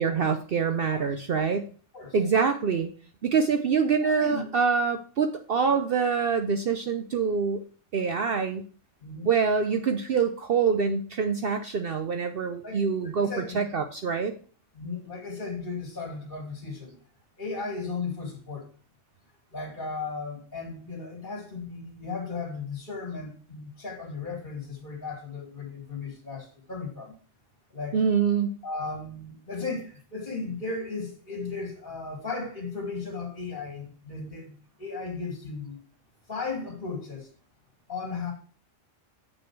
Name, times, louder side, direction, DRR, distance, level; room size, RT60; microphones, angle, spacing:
voice 1, 0.0-1.7 2.1-2.9 3.2-7.6 7.9-8.6 9.2-14.3 27.9-28.6, right 6 dB, 55° right, 0.8 m, -25 dB
voice 2, 4.0-4.5 9.0-9.3 12.6-13.7 14.7-17.0 17.4-18.7 19.5-27.1 27.7-28.0 28.6-35.8 36.3-37.3 37.9-38.3, left 4 dB, 40° left, 1.9 m, -36 dB
7.0 x 6.3 x 4.5 m
omnidirectional pair, 1.3 m